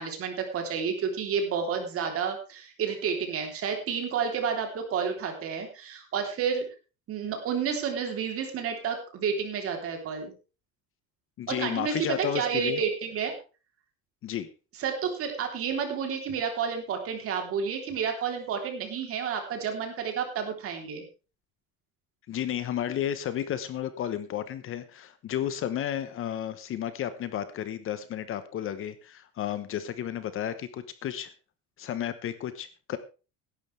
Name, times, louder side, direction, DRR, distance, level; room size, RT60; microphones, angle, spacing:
voice 1, 0.0-6.6 7.1-10.3 11.5-13.3 14.8-21.0, right 6 dB, 40° right, 4 dB, 3.4 m, -30 dB
voice 2, 11.4-12.8 14.2-14.5 22.3-31.3 31.8-33.0, left 10 dB, 40° left, 12 dB, 1.0 m, -32 dB
16.5 x 11.5 x 3.3 m, 0.33 s
cardioid pair, 170°, 33 cm